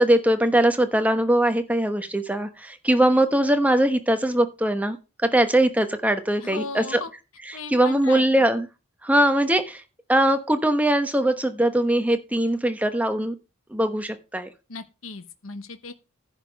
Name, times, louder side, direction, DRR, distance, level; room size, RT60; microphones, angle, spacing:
voice 1, 0.0-5.0 5.2-7.0 7.7-8.7 9.0-9.8 10.1-13.3 13.7-14.5, right 1 dB, 5° right, 1.0 m, -21 dB
voice 2, 6.4-7.1 7.5-8.2 14.7-15.9, left 4 dB, 75° left, 1.1 m, -36 dB
10.5 x 7.4 x 5.2 m
head